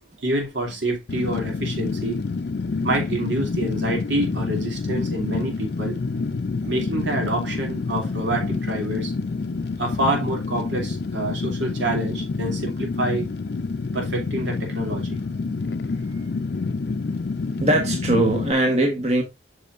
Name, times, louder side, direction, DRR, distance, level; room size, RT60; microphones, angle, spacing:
voice 1, 0.2-2.2 2.8-6.0 6.7-9.1 9.8-13.3 13.9-15.2, right 1 dB, 85° right, 3.0 m, -27 dB
Fire, 1.1-18.5, left 4 dB, 60° left, 0.5 m, -27 dB
voice 2, 17.6-19.2, right 1 dB, 35° right, 1.4 m, -21 dB
8.4 x 6.1 x 2.6 m
head